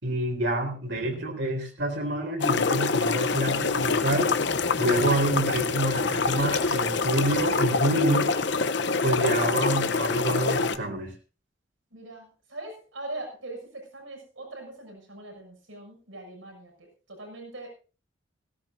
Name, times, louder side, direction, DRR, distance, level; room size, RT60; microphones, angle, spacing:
voice 1, 0.0-4.3 4.8-8.3 9.0-11.1, right 1 dB, 65° right, 1 dB, 4.0 m, -27 dB
sound 1, 2.4-10.8, left 4 dB, 60° left, 0.8 m, -25 dB
voice 2, 11.9-17.7, right 2 dB, 80° right, 2 dB, 6.7 m, -41 dB
18.0 x 16.0 x 2.6 m, 0.35 s
head